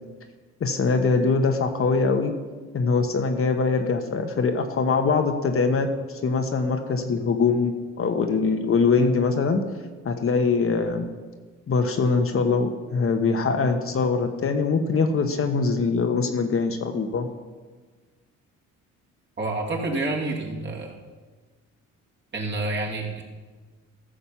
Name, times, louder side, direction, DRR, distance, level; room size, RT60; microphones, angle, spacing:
voice 1, 0.6-2.3 2.7-5.9 6.2-9.6 10.0-11.1 11.7-17.3, left 4 dB, 45° left, 5 dB, 1.2 m, -23 dB
voice 2, 19.4-20.9 22.3-23.2, right 2 dB, 35° right, -2 dB, 2.8 m, -28 dB
15.0 x 6.6 x 5.7 m, 1.4 s
cardioid pair, 90°, 30 cm